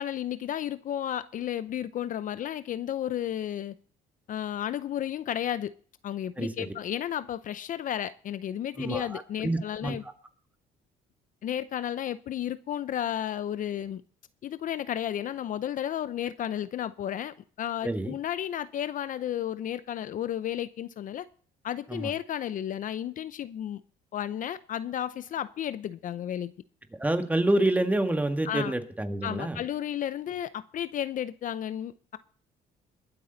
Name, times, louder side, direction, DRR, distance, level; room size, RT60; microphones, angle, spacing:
voice 1, 0.0-3.7 4.3-5.7 6.0-10.0 11.4-14.0 14.4-21.3 21.6-23.8 24.1-26.5 28.5-28.7 29.2-32.2, left 10 dB, 50° left, 0.6 m, -33 dB
voice 2, 6.4-6.7 8.8-10.1 17.8-18.1 21.9-22.1 27.0-29.6, right 1 dB, 10° right, 1.7 m, -28 dB
21.5 x 8.5 x 4.0 m
cardioid pair, 110°, 17 cm